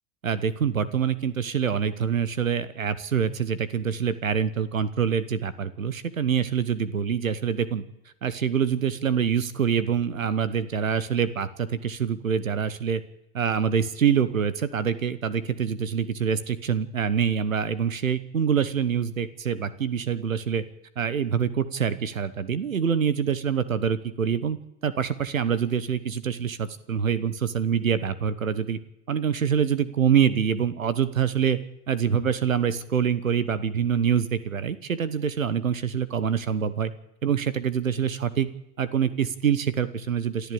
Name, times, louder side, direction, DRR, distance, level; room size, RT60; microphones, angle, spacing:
voice 1, 0.2-7.8 8.2-13.0 13.3-20.6 21.0-24.6 24.8-28.8 29.1-31.6 31.9-36.9 37.2-38.5 38.8-40.5, right 7 dB, 90° right, 16 dB, 1.2 m, -25 dB
28.0 x 12.0 x 8.7 m, 0.90 s
hypercardioid pair, 80°, 39 cm